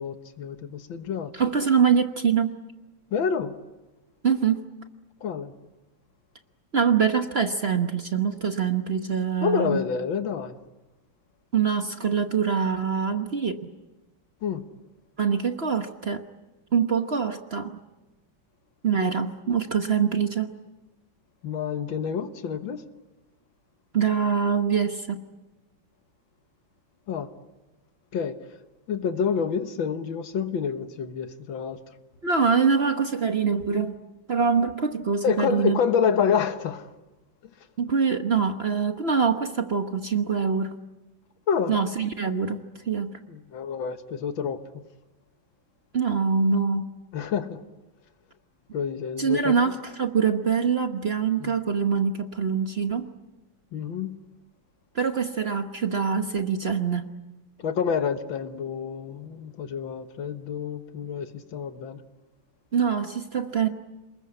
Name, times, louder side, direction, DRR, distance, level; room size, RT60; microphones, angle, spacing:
voice 1, 0.0-1.3 3.1-3.5 5.2-5.5 9.4-10.6 14.4-14.6 21.4-22.8 27.1-27.3 28.1-28.4 28.9-31.8 35.2-36.9 41.5-41.8 43.3-44.6 47.1-47.6 48.7-49.5 51.4-51.6 53.7-54.1 57.6-62.0, left 7 dB, 75° left, 2.0 m, -28 dB
voice 2, 1.3-2.5 4.2-4.6 6.7-9.8 11.5-13.6 15.2-16.2 16.7-17.8 18.8-20.5 23.9-25.2 32.2-33.9 34.3-35.8 37.8-40.7 41.7-42.6 42.9-43.1 45.9-46.9 49.2-53.1 54.9-57.1 62.7-63.7, right 6 dB, 40° right, 1.1 m, -24 dB
28.0 x 21.0 x 8.4 m
omnidirectional pair, 2.1 m